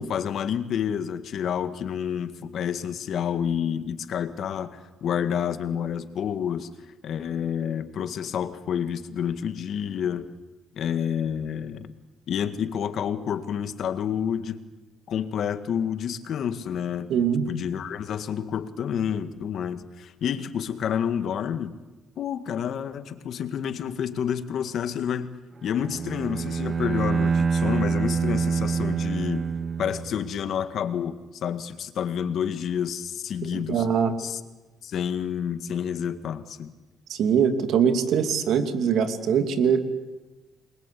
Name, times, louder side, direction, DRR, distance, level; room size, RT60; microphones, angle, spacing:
voice 1, 0.0-6.7 7.0-10.3 10.7-11.9 12.3-14.6 15.1-17.1 17.5-21.8 22.2-29.5 29.8-33.9 34.2-34.4 34.8-36.7, left 8 dB, 70° left, 10 dB, 1.8 m, -29 dB
voice 2, 17.1-17.5 33.4-34.1 37.1-39.8, right 7 dB, 75° right, 7 dB, 2.8 m, -22 dB
Bowed string instrument, 25.7-30.5, right 5 dB, 45° right, 1.4 m, -26 dB
29.0 x 22.0 x 8.5 m, 1.1 s
cardioid pair, 90°, 0 cm